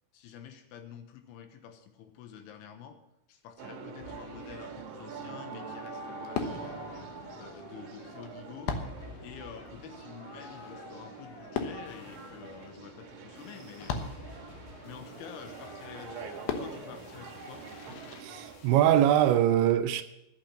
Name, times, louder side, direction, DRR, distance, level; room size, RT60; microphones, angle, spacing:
voice 1, 0.1-3.0 3.3-6.8 7.4-8.8 9.2-14.0 14.4-14.6 14.8-17.6, left 8 dB, 90° left, 3.6 m, -48 dB
sound 1, 3.6-18.6, right 6 dB, 60° right, 2.7 m, -45 dB
Fireworks, 4.0-18.2, left 6 dB, 70° left, 2.3 m, -41 dB
sound 2, 5.5-5.7 6.1-6.8 7.4-7.8 8.9-9.5 10.3-19.3, left 3 dB, 55° left, 3.3 m, -57 dB
voice 2, 18.2-20.0, right 11 dB, 80° right, 2.8 m, -23 dB
12.0 x 8.6 x 7.5 m
omnidirectional pair, 5.5 m